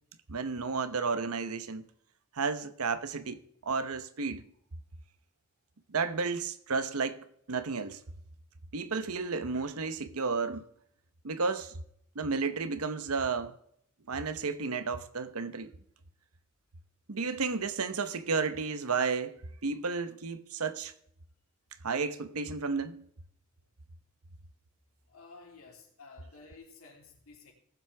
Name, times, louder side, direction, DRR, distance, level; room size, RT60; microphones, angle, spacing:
voice 1, 0.3-1.9 2.3-4.4 5.9-8.0 8.7-10.7 11.2-11.8 12.1-13.6 14.1-15.7 17.1-19.4 19.6-20.9 21.8-23.0, right 4 dB, 90° right, 0.9 m, -32 dB
voice 2, 25.1-27.5, left 4 dB, 75° left, 3.3 m, -53 dB
18.5 x 7.7 x 3.4 m
head